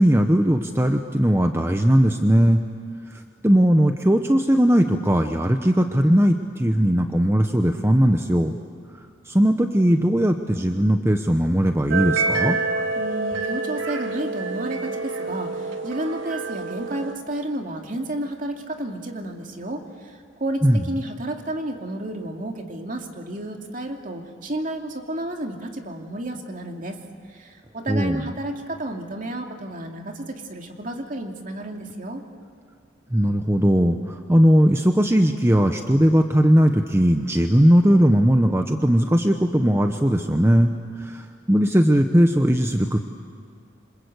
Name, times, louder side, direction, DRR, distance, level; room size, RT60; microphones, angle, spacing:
voice 1, 0.0-2.6 3.4-8.6 9.3-12.6 20.6-20.8 27.9-28.2 33.1-43.0, equal, 15° right, 5 dB, 0.9 m, -18 dB
sound 1, 11.9-17.2, right 3 dB, 90° right, 2.0 m, -27 dB
voice 2, 13.0-27.0 27.3-32.2, right 1 dB, 45° right, 3 dB, 2.6 m, -31 dB
28.0 x 26.5 x 8.1 m, 2.3 s
head